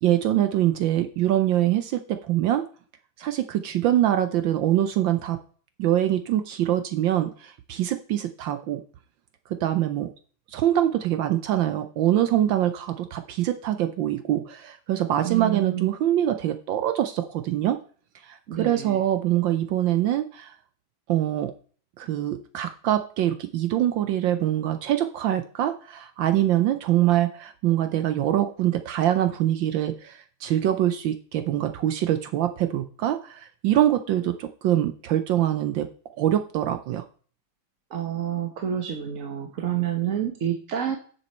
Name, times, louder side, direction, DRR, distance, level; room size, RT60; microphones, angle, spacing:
voice 1, 0.0-2.6 3.2-5.4 5.8-8.8 9.6-10.1 10.5-17.8 18.2-20.5 21.1-21.5 22.0-35.9 36.2-37.0, right 12 dB, 70° right, 9 dB, 1.3 m, -24 dB
voice 2, 15.2-15.9 18.5-19.0 37.9-41.0, right 10 dB, 50° right, 5 dB, 1.0 m, -28 dB
9.8 x 7.2 x 4.3 m, 0.43 s
omnidirectional pair, 2.3 m